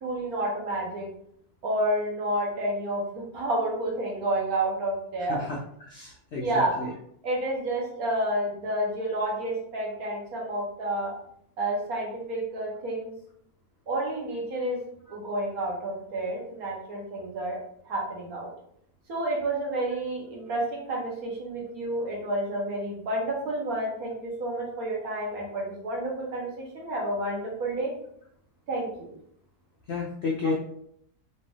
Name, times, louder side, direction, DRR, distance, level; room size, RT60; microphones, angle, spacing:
voice 1, 0.0-1.1 1.6-5.4 6.4-6.8 7.2-11.2 11.6-13.1 13.9-14.8 15.1-17.6 17.8-18.5 19.1-27.9 28.7-29.1, right 1 dB, 60° right, -2 dB, 1.4 m, -30 dB
voice 2, 5.3-6.9 29.9-30.5, left 3 dB, 80° left, -1 dB, 0.5 m, -32 dB
4.1 x 2.6 x 3.3 m, 0.68 s
omnidirectional pair, 1.8 m